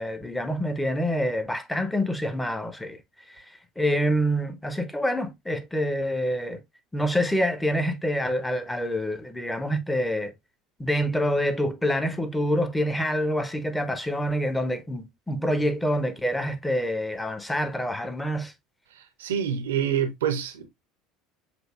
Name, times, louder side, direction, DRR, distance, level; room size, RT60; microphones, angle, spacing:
voice 1, 0.0-3.0 3.3-3.4 3.8-6.6 6.9-10.3 10.8-18.5, equal, 5° left, 0.9 m, -26 dB
voice 2, 19.0-20.7, right 8 dB, 70° right, 0.7 m, -27 dB
7.8 x 2.7 x 2.3 m
figure-of-eight pair, 65°, 0 cm